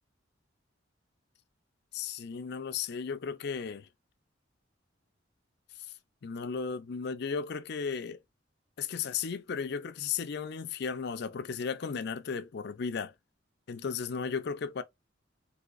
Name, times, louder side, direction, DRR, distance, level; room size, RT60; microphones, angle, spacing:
voice 1, 1.9-3.9 6.2-8.2 8.8-13.1 13.7-14.8, left 6 dB, 60° left, 0.4 m, -35 dB
3.9 x 2.7 x 2.4 m
head